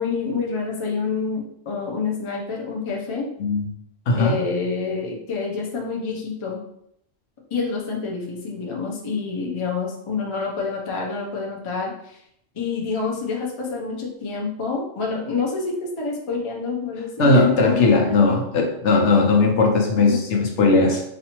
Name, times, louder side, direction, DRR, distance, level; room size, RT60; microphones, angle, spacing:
voice 1, 0.0-3.3 4.1-6.6 7.5-12.2 12.5-18.3 20.0-20.2, left 4 dB, 35° left, -1 dB, 0.6 m, -27 dB
voice 2, 17.2-21.0, left 3 dB, 70° left, 1 dB, 1.0 m, -18 dB
4.2 x 2.6 x 2.9 m, 0.75 s
omnidirectional pair, 1.3 m